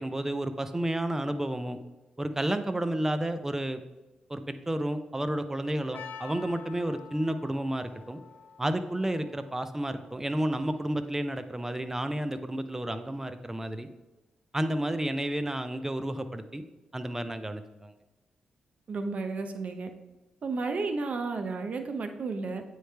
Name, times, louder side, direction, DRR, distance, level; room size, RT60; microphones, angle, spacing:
voice 1, 0.0-1.8 2.2-3.8 4.3-8.2 8.6-13.9 14.5-16.6 16.9-17.9, right 1 dB, 15° right, 9 dB, 0.6 m, -31 dB
Percussion, 5.9-11.2, left 6 dB, 70° left, 0.5 m, -49 dB
voice 2, 18.9-19.9 20.4-22.6, right 3 dB, 55° right, 7 dB, 0.7 m, -32 dB
8.8 x 3.3 x 3.3 m, 1.1 s
cardioid pair, 60°, 3 cm